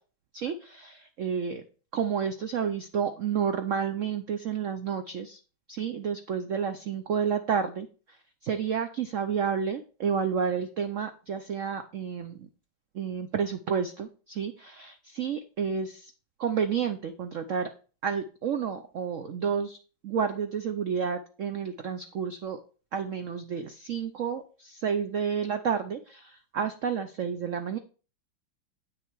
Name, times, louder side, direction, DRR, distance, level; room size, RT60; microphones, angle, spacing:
voice 1, 0.3-1.6 1.9-5.4 5.7-7.9 8.4-12.3 13.0-16.0 16.4-17.7 18.0-19.8 20.0-22.6 22.9-26.2 26.5-27.8, right 7 dB, 90° right, 8 dB, 0.6 m, -30 dB
8.6 x 6.3 x 4.6 m, 0.37 s
omnidirectional pair, 2.2 m